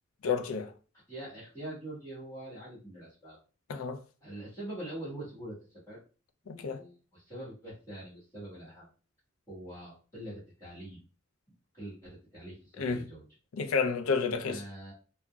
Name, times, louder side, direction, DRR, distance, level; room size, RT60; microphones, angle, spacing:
voice 1, 0.2-0.7 3.7-4.0 6.5-6.8 12.8-13.0 13.5-14.6, left 5 dB, 80° left, 0.4 m, -30 dB
voice 2, 1.1-3.4 4.2-6.0 6.4-8.9 9.5-11.0 11.7-13.2 14.4-14.9, right 1 dB, 15° left, 1.4 m, -44 dB
3.7 x 2.1 x 2.3 m
head